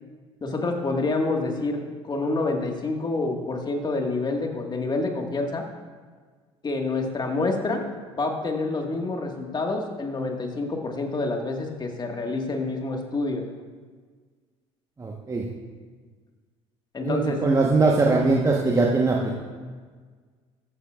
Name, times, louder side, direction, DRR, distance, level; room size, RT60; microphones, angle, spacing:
voice 1, 0.4-5.7 6.6-7.9 8.2-13.5 16.9-17.5, left 3 dB, 30° left, 2 dB, 1.8 m, -27 dB
voice 2, 15.0-15.5 17.0-19.4, right 3 dB, 20° right, -1 dB, 1.3 m, -21 dB
14.5 x 11.0 x 2.5 m, 1.5 s
hypercardioid pair, 60°, 15 cm